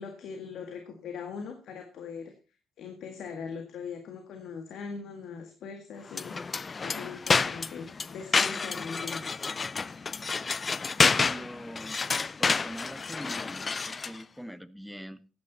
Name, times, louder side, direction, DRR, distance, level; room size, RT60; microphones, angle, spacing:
voice 1, 0.0-2.3 2.8-9.2, left 5 dB, 75° left, 5 dB, 1.9 m, -41 dB
sound 1, 6.1-14.2, left 4 dB, 35° left, 0.5 m, -29 dB
voice 2, 11.0-12.0 12.4-15.3, equal, ahead, 14 dB, 1.0 m, -43 dB
14.0 x 10.5 x 4.1 m, 0.33 s
cardioid pair, 90°, 0 cm